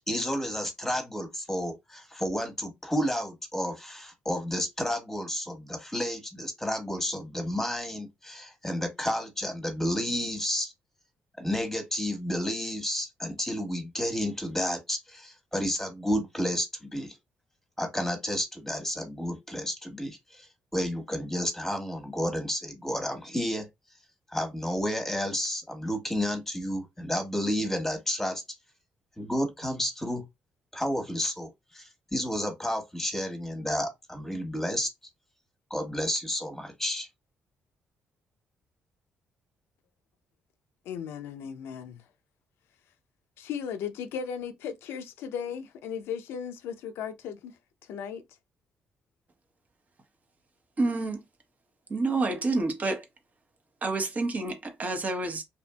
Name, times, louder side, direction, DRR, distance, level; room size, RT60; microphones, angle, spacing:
voice 1, 0.1-10.7 11.4-17.2 17.8-23.7 24.3-28.4 29.2-30.2 30.7-34.9 35.7-37.1, equal, 5° left, 1.1 m, -31 dB
voice 2, 40.9-42.0 43.4-47.6 47.9-48.2, left 7 dB, 80° left, 0.4 m, -36 dB
voice 3, 50.8-51.2 51.9-53.0 53.8-55.4, right 3 dB, 40° right, 0.9 m, -28 dB
2.7 x 2.5 x 2.2 m
supercardioid pair, 65°, 4 cm